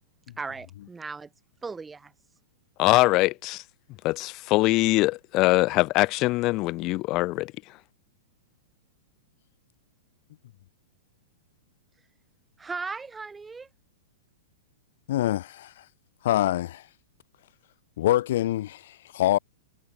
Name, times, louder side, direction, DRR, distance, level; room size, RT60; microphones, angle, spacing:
voice 1, 0.4-1.3 1.6-2.1 12.0-12.1 12.6-13.7, right 4 dB, 10° right, 2.9 m, -37 dB
voice 2, 2.8-3.6 4.0-7.5, left 21 dB, 35° left, 2.5 m, -22 dB
voice 3, 15.1-15.7 16.2-16.8 18.0-19.4, left 14 dB, 65° left, 1.5 m, -25 dB
hypercardioid pair, 135°, 0 cm